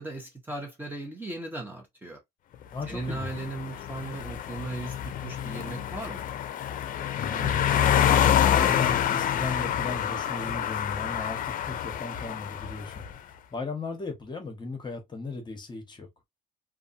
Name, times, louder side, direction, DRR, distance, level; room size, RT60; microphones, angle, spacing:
voice 1, 0.0-2.2 2.9-6.2, right 2 dB, 10° right, 1.0 m, -37 dB
voice 2, 2.7-3.3 7.1-13.0 13.5-16.1, left 3 dB, 25° left, 1.1 m, -36 dB
sound 1, 2.8-13.1, left 10 dB, 55° left, 0.5 m, -27 dB
2.6 x 2.4 x 2.6 m
cardioid pair, 110°, 17 cm